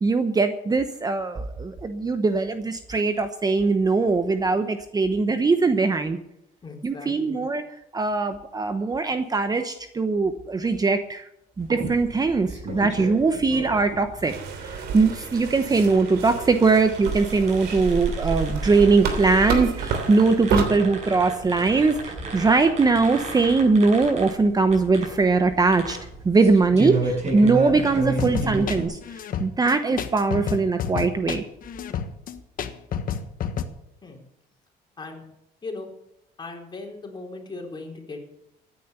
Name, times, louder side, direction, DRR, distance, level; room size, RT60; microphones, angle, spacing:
voice 1, 0.0-6.2 6.8-7.6 7.9-11.2 11.6-12.5 12.7-14.3 14.6-26.0 26.2-29.0 29.4-31.5, right 3 dB, 20° right, 9 dB, 1.0 m, -21 dB
voice 2, 6.6-7.4 34.0-34.2 35.0-35.3 35.6-35.9 36.4-38.3, left 3 dB, 25° left, 1 dB, 4.1 m, -38 dB
sound 1, 11.6-28.8, right 2 dB, 40° right, 7.4 m, -33 dB
sound 2, 14.2-20.6, right 5 dB, 75° right, 3.2 m, -29 dB
sound 3, 28.2-33.6, left 8 dB, 55° left, 1.4 m, -30 dB
15.0 x 9.7 x 6.8 m, 0.83 s
cardioid pair, 110°, 17 cm